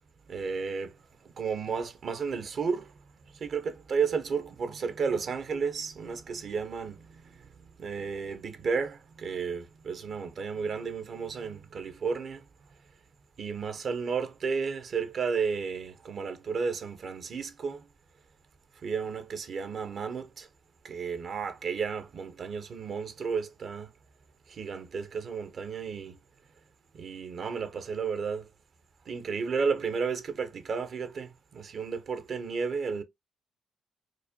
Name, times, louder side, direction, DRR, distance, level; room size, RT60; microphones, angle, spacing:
voice 1, 0.3-3.0 3.3-12.5 13.4-17.9 18.8-20.5 20.8-23.9 24.5-26.2 26.9-28.5 29.1-33.0, right 5 dB, 55° right, 0.7 m, -33 dB
4.7 x 2.2 x 2.7 m
cardioid pair, 90°, 0 cm